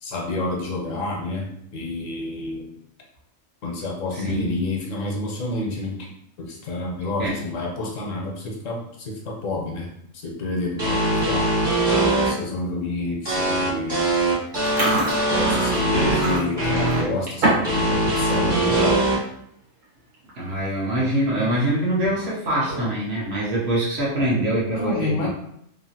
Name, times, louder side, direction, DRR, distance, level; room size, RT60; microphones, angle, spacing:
voice 1, 0.0-2.7 3.6-6.1 6.4-9.9 10.1-11.5 12.0-14.2 15.3-19.1 24.7-25.3, left 2 dB, 75° left, -1 dB, 1.1 m, -29 dB
voice 2, 4.1-4.5 7.2-7.4 20.4-25.3, right 1 dB, 55° right, -5 dB, 1.0 m, -24 dB
sound 1, 10.8-12.3 13.3-17.0 17.6-19.2, right 1 dB, 25° right, 0.8 m, -21 dB
Chewing mastication, 14.5-17.8 18.1-18.4 18.9-19.1 19.8-19.9 20.1-20.5 20.9-21.0 22.5-23.0, right 2 dB, 75° right, 1.4 m, -26 dB
2.9 x 2.4 x 2.7 m, 0.74 s
omnidirectional pair, 1.4 m